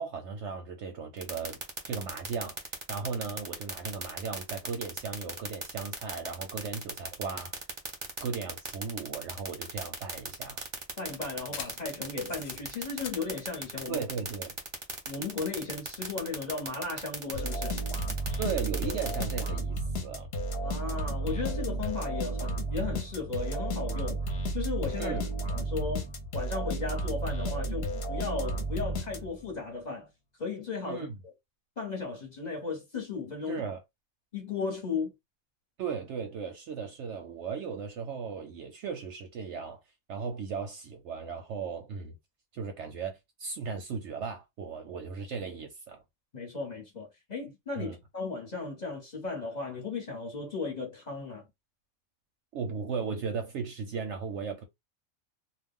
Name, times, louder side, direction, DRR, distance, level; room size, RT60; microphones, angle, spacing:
voice 1, 0.0-1.6 1.9-2.6 2.9-7.6 8.2-10.6 13.9-14.5 18.4-20.3 25.0-25.5 30.9-31.2 33.5-33.8 35.8-39.8 40.1-42.2 42.5-46.0 47.8-48.0 52.5-54.6, right 5 dB, 65° right, 0.8 m, -36 dB
sound 1, 1.2-19.5, right 4 dB, 30° right, 0.6 m, -36 dB
sound 2, 9.7-14.8, left 7 dB, 85° left, 1.1 m, -47 dB
voice 2, 11.0-14.0 15.1-17.8 20.6-24.2 24.5-25.2 25.5-30.1 30.4-31.3 31.8-33.6 34.3-35.1 46.3-51.4, left 4 dB, 35° left, 0.9 m, -36 dB
sound 3, 17.3-29.6, right 2 dB, 55° left, 0.9 m, -33 dB
2.4 x 2.2 x 3.5 m
omnidirectional pair, 1.5 m